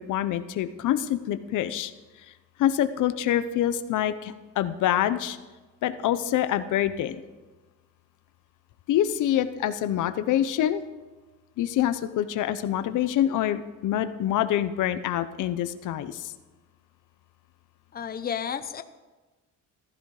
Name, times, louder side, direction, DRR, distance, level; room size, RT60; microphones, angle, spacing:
voice 1, 0.0-1.9 2.3-2.4 2.6-5.4 5.8-7.2 8.9-10.8 11.6-16.3, left 11 dB, 75° left, 12 dB, 0.9 m, -26 dB
voice 2, 17.9-18.8, left 8 dB, 30° left, 10 dB, 0.8 m, -32 dB
15.0 x 14.0 x 4.9 m, 1.2 s
cardioid pair, 155°, 31 cm